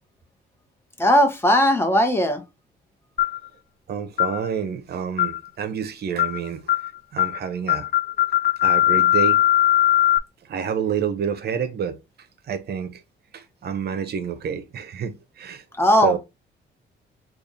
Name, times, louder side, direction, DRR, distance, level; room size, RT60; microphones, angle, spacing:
voice 1, 1.0-2.4 15.8-16.2, equal, 10° left, 1.0 m, -18 dB
sound 1, 3.2-3.5 4.2-4.4 5.2-5.5 6.2-6.4 6.7-6.9 7.2-7.4 7.7-10.2, left 13 dB, 45° left, 0.4 m, -19 dB
voice 2, 3.9-6.6 7.1-7.9 8.6-9.4 10.5-12.0 12.5-13.0 13.3-15.6 16.0-16.2, right 7 dB, 55° right, 0.7 m, -28 dB
3.5 x 2.4 x 4.0 m
cardioid pair, 90°, 20 cm